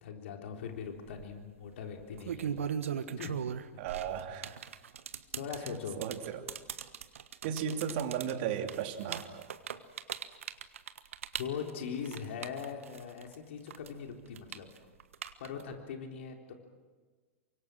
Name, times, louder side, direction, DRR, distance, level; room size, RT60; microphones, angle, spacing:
voice 1, 0.0-2.6 3.2-3.4 5.3-6.0 11.4-14.7 15.4-16.5, left 7 dB, 65° left, 3 dB, 3.8 m, -41 dB
sound 1, 0.9-1.2 2.0-13.4 13.7-15.8, right 8 dB, 75° right, 1.4 m, -39 dB
voice 2, 3.8-4.6 5.7-6.4 7.4-9.5, right 8 dB, 55° right, 5 dB, 2.9 m, -35 dB
28.5 x 25.0 x 6.3 m, 1.4 s
hypercardioid pair, 100°, 7 cm